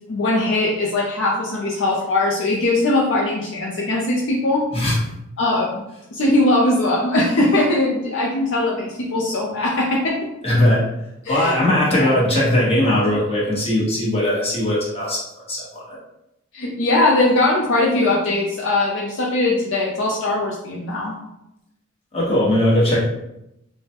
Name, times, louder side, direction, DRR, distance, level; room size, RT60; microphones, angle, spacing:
voice 1, 0.1-4.6 5.4-5.8 6.1-10.2 11.3-11.6 11.9-12.1 16.5-21.1, left 2 dB, 60° left, -3 dB, 0.5 m, -20 dB
voice 2, 10.4-10.8 11.3-15.2 15.5-16.0 22.1-23.0, left 1 dB, 25° left, -6 dB, 1.1 m, -19 dB
4.8 x 2.2 x 2.8 m, 0.87 s
head